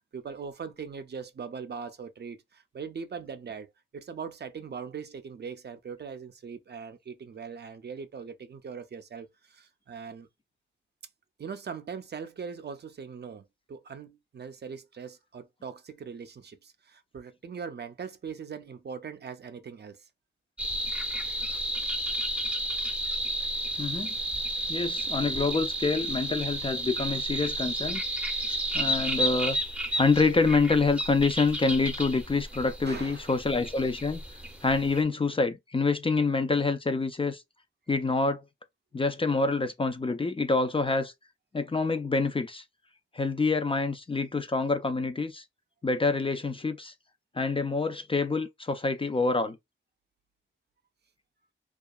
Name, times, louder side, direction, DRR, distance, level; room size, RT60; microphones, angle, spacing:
voice 1, 0.1-10.3 11.4-20.1 32.9-33.3, right 6 dB, 55° right, 0.4 m, -41 dB
sound 1, 20.6-35.0, right 1 dB, 5° right, 0.7 m, -32 dB
voice 2, 23.8-24.1 24.7-28.0 28.7-29.6 30.0-34.2 34.6-37.4 37.9-38.4 38.9-41.1 41.5-42.6 43.1-45.4 45.8-46.9 47.4-49.6, left 3 dB, 25° left, 0.4 m, -26 dB
2.7 x 2.3 x 2.2 m
wide cardioid pair, 105°, 21 cm